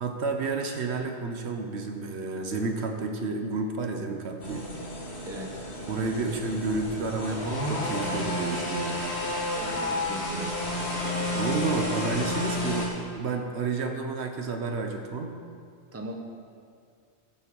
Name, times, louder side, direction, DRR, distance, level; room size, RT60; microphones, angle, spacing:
voice 1, 0.0-4.7 5.9-9.0 11.3-15.4, right 3 dB, 70° right, 4 dB, 1.2 m, -30 dB
sound 1, 4.4-12.9, left 1 dB, 65° left, 2.1 m, -31 dB
voice 2, 9.5-10.7 15.9-16.2, right 1 dB, 15° right, 2 dB, 1.0 m, -39 dB
14.5 x 7.5 x 5.4 m, 2.2 s
omnidirectional pair, 1.2 m